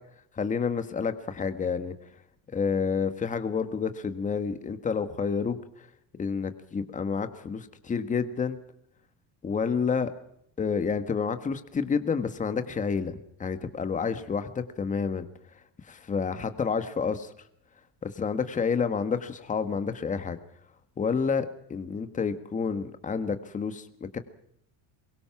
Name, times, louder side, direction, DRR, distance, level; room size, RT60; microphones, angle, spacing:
voice 1, 0.4-1.9 2.5-5.6 6.2-8.6 9.4-10.1 10.6-15.3 15.9-17.3 18.0-20.4 21.0-24.2, left 5 dB, 20° left, 9 dB, 1.5 m, -29 dB
23.5 x 22.5 x 6.0 m, 0.73 s
cardioid pair, 160°, 41 cm